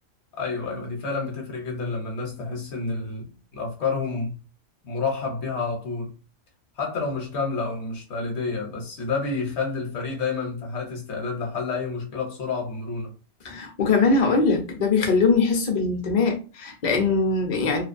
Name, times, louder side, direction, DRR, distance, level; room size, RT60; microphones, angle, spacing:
voice 1, 0.3-4.4 4.8-6.1 6.8-13.1, left 4 dB, 60° left, 0.9 m, -29 dB
voice 2, 13.4-17.8, left 4 dB, 45° left, 0.6 m, -21 dB
2.4 x 2.1 x 2.4 m
omnidirectional pair, 1.4 m